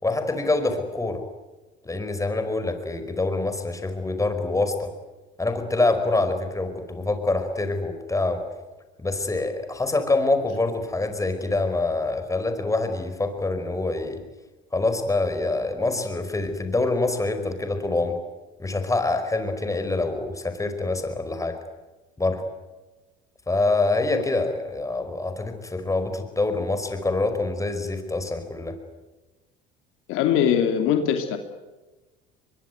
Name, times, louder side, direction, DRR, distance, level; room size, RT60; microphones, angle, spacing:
voice 1, 0.0-1.2 1.8-4.9 5.4-8.4 9.0-14.2 14.7-18.2 18.6-21.5 22.2-22.4 23.5-28.8, left 2 dB, 15° left, 8 dB, 4.9 m, -25 dB
voice 2, 30.1-31.4, left 9 dB, 70° left, 6 dB, 2.6 m, -21 dB
23.0 x 23.0 x 9.4 m, 1.2 s
supercardioid pair, 90°, 21 cm